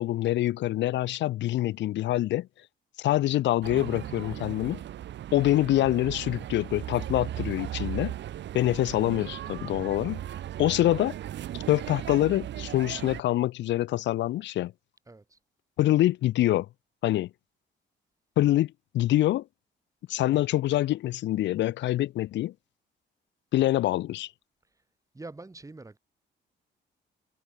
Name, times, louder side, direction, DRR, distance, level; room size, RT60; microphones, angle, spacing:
voice 1, 0.0-2.5 3.0-4.8 5.3-8.1 8.5-10.2 10.6-11.2 11.7-14.7 15.8-16.7 17.0-17.3 18.4-19.4 20.1-22.5 23.5-24.3, left 14 dB, 65° left, 0.4 m, -25 dB
sound 1, 3.6-13.2, right 12 dB, 65° right, 0.9 m, -37 dB
voice 2, 15.1-15.4 25.1-26.0, right 2 dB, 15° right, 2.1 m, -44 dB
cardioid pair, 90°, 20 cm